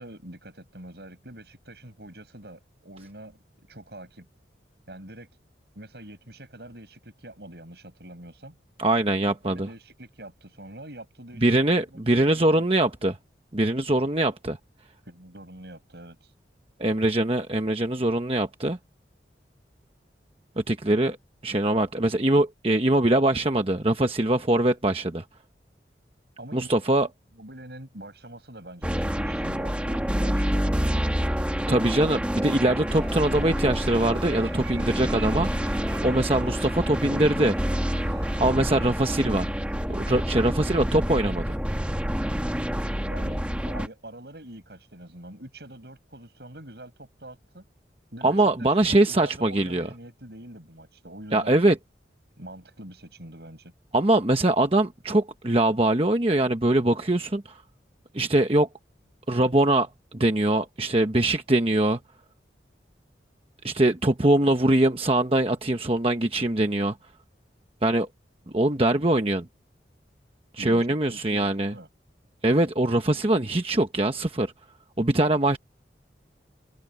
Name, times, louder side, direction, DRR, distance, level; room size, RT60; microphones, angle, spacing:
voice 1, 0.0-4.3 4.9-5.3 5.8-8.6 9.4-11.5 11.9-12.7 15.1-16.3 26.4-26.7 27.4-30.8 43.1-47.6 48.1-48.7 49.1-51.6 52.4-53.7 70.6-71.9, right 1 dB, 70° right, 5.8 m, -44 dB
voice 2, 8.8-9.7 11.4-13.2 13.5-14.6 16.8-18.8 20.6-21.2 21.4-25.2 26.5-27.1 31.7-35.7 36.0-37.6 38.4-39.5 39.9-41.6 48.2-49.9 51.3-51.8 53.9-57.6 58.1-58.7 59.3-62.0 63.6-67.0 67.8-68.1 68.5-69.4 70.5-71.7 72.4-74.5 75.0-75.6, right 1 dB, 30° right, 1.1 m, -22 dB
sound 1, 28.8-43.9, equal, 5° right, 1.5 m, -27 dB
sound 2, 32.8-38.5, right 5 dB, 90° right, 6.2 m, -45 dB
open air
head